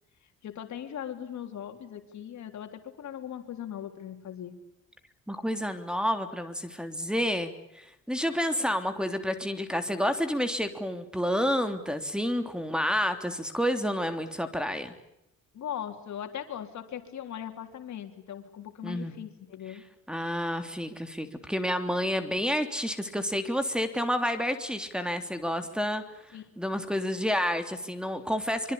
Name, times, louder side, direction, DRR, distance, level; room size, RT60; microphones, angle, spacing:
voice 1, 0.4-4.6 15.5-19.8 26.3-26.4, left 9 dB, 65° left, 6 dB, 3.8 m, -39 dB
voice 2, 5.3-14.9 18.8-19.1 20.1-28.7, equal, 5° right, 9 dB, 3.4 m, -29 dB
25.0 x 25.0 x 8.7 m, 0.84 s
cardioid pair, 90°, 30 cm